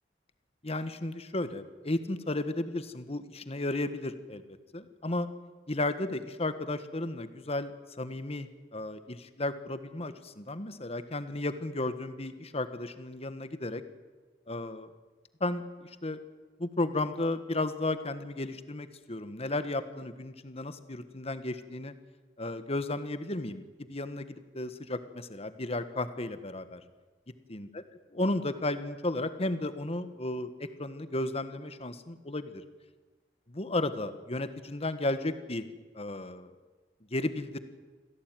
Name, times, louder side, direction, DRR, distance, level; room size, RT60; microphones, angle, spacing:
voice 1, 0.6-4.4 4.7-5.3 5.7-7.7 8.0-13.8 14.5-14.9 15.4-16.2 16.6-21.9 22.4-26.8 27.5-27.7 28.2-32.6 33.5-35.6 35.9-36.5 37.1-37.6, left 2 dB, 35° left, 11 dB, 1.5 m, -34 dB
26.5 x 17.0 x 9.3 m, 1.3 s
head